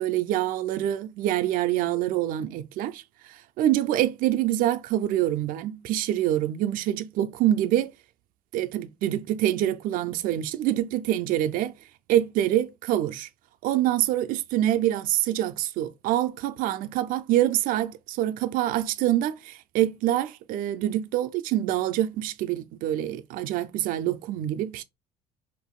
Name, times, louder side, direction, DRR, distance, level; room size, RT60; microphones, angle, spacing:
voice 1, 0.0-3.0 3.6-7.9 8.5-11.7 12.1-13.3 13.6-24.8, right 13 dB, 70° right, 0.5 m, -25 dB
3.0 x 2.6 x 3.5 m
cardioid pair, 105°, 15 cm